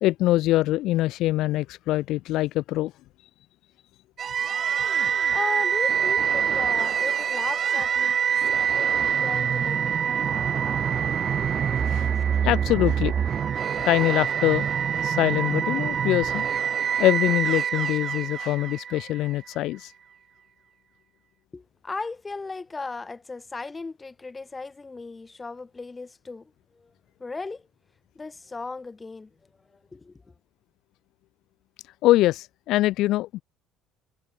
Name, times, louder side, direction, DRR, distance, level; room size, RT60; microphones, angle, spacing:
voice 1, 0.0-2.9 11.9-12.1 12.4-13.1 13.8-14.7 15.0-16.5 17.0-19.9 32.0-33.4, left 16 dB, 70° left, 0.4 m, -23 dB
sound 1, 4.2-19.3, right 8 dB, 45° right, 0.3 m, -25 dB
voice 2, 5.1-8.2 8.5-10.0 11.7-12.4 21.5-26.9 27.2-27.6 28.1-29.3 29.7-30.2, left 3 dB, 20° left, 1.2 m, -37 dB
supercardioid pair, 85°, 0 cm